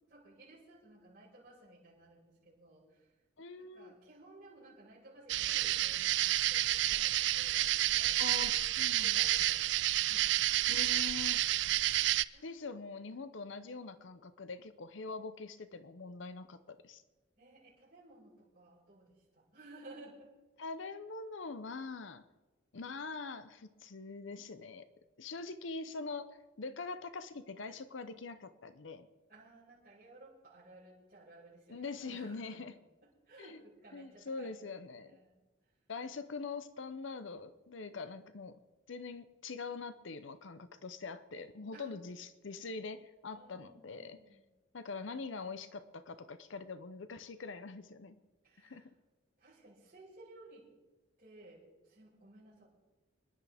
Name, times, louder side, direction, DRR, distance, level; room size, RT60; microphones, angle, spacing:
voice 1, 0.0-3.1 3.6-7.7 7.9-8.5 9.0-10.4 12.3-12.6 17.4-20.3 29.3-32.6 33.0-35.4 41.7-41.9 43.3-44.5 48.4-48.9 49.4-50.7 51.2-52.7, right 2 dB, 45° right, -8 dB, 5.0 m, -57 dB
voice 2, 3.4-3.9 8.2-9.2 10.7-11.5 12.4-17.0 20.6-22.2 22.7-24.9 25.2-29.1 31.7-32.7 33.4-33.6 33.9-35.2 35.9-38.6 38.9-44.2 44.7-48.2 48.6-48.8, left 4 dB, 70° left, 12 dB, 0.7 m, -43 dB
sound 1, 5.3-12.2, right 15 dB, 60° right, 0.3 m, -30 dB
26.5 x 10.5 x 3.5 m, 1.2 s
head